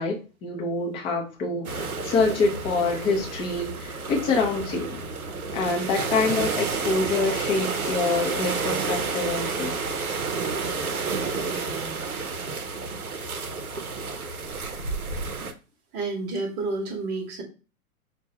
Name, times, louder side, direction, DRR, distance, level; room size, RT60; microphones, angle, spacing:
voice 1, 0.0-5.0 5.5-9.8, left 3 dB, 15° left, 0 dB, 0.5 m, -26 dB
sound 1, 1.6-15.5, right 4 dB, 80° right, 0.6 m, -30 dB
voice 2, 11.4-12.1 15.3-15.5 15.9-17.4, right 3 dB, 25° right, 2 dB, 1.0 m, -31 dB
5.3 x 2.2 x 2.7 m, 0.33 s
figure-of-eight pair, 105°, 43 cm